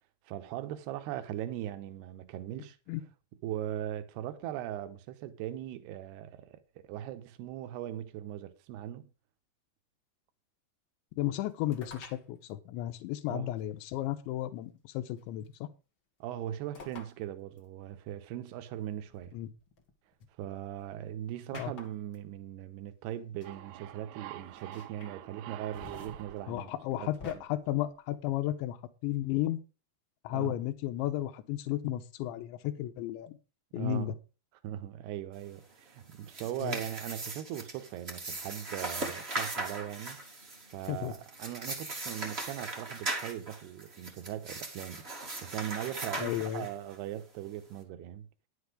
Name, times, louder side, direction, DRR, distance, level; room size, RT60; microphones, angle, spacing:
voice 1, 0.3-2.8 3.4-9.1 13.3-13.6 16.2-19.3 20.4-26.7 27.0-27.4 30.3-30.5 33.8-34.1 34.6-40.2 40.7-45.0 45.4-48.3, right 12 dB, 75° right, 2.8 m, -39 dB
voice 2, 11.2-15.7 19.3-19.5 21.5-21.7 26.5-29.6 30.2-33.4 33.7-34.1 36.6-36.8 40.9-41.1 46.2-46.7, left 14 dB, 85° left, 3.2 m, -34 dB
sound 1, 11.7-12.2 13.6-13.7 15.2-15.5 16.7-17.1 17.6-17.7 19.1-20.3 21.5-22.2 23.1-23.2 23.4-23.5 24.5-25.1 25.5-27.3, left 3 dB, 50° left, 1.5 m, -49 dB
sound 2, 23.4-27.9, right 13 dB, 90° right, 3.2 m, -48 dB
sound 3, 36.1-47.0, right 2 dB, 45° right, 0.8 m, -39 dB
10.5 x 8.2 x 5.0 m
omnidirectional pair, 5.2 m